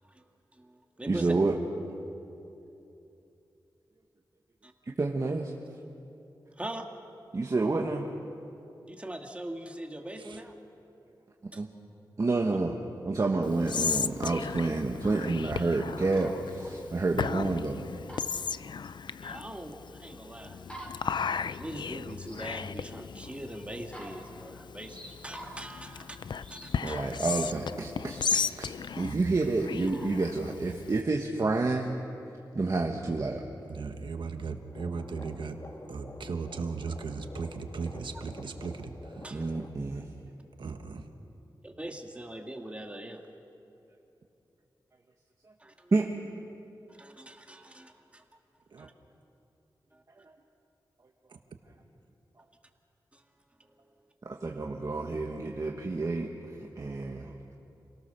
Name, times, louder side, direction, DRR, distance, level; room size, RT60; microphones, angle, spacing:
voice 1, 0.5-1.3 4.6-4.7 6.6-6.9 8.9-10.5 11.5-11.6 18.8-20.6 21.6-26.2 26.5-27.1 39.2-39.4 41.6-43.2 45.6-45.7 46.9-48.2 48.8-48.9 49.9-50.0 53.1-53.2 53.6-53.9, right 1 dB, 15° right, 3 dB, 2.1 m, -42 dB
voice 2, 1.1-1.6 5.0-5.5 7.3-8.1 11.5-11.7 12.2-12.8 13.0-17.8 26.8-32.0 32.5-33.4 39.3-40.1 45.9-46.1 54.4-56.3 56.8-57.3, right 3 dB, 40° right, 1 dB, 1.4 m, -29 dB
Whispering, 13.4-31.0, left 6 dB, 65° left, 0.4 m, -36 dB
sound 1, 15.7-18.3 18.5-19.9 20.6-22.4 22.7-22.8 23.1-23.2 23.5-23.6 23.8-24.4 24.8-25.7 26.4-26.7 27.2-27.5 27.9-28.4 29.1-29.3 29.8-30.1, right 1 dB, 15° left, 4.3 m, -48 dB
voice 3, 29.0-29.3 33.7-35.6 35.9-39.2 40.6-41.1 48.7-48.9, right 4 dB, 80° right, 5 dB, 1.5 m, -37 dB
sound 2, 34.7-39.7, left 2 dB, 40° left, 1.8 m, -48 dB
28.5 x 17.5 x 6.9 m, 2.8 s
wide cardioid pair, 85°, 8 cm